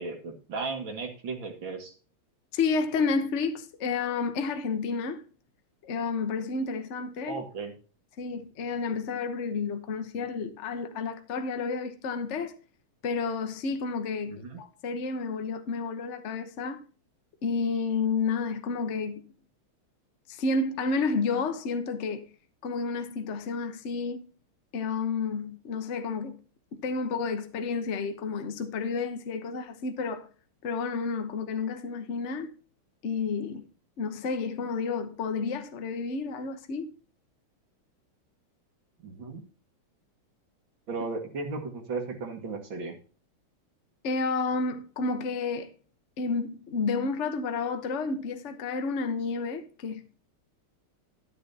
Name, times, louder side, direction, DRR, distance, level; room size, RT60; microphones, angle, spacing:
voice 1, 0.0-1.9 7.2-7.7 14.3-14.6 39.0-39.4 40.9-43.0, right 4 dB, 65° right, 2.7 m, -35 dB
voice 2, 2.5-5.2 5.8-7.4 8.2-12.5 13.0-16.8 17.4-19.3 20.3-22.3 22.6-24.3 24.7-26.4 26.7-30.3 30.6-32.5 33.0-33.7 34.0-36.9 44.0-45.7 46.2-50.1, left 4 dB, 45° left, 1.0 m, -30 dB
12.5 x 8.6 x 2.8 m
omnidirectional pair, 2.3 m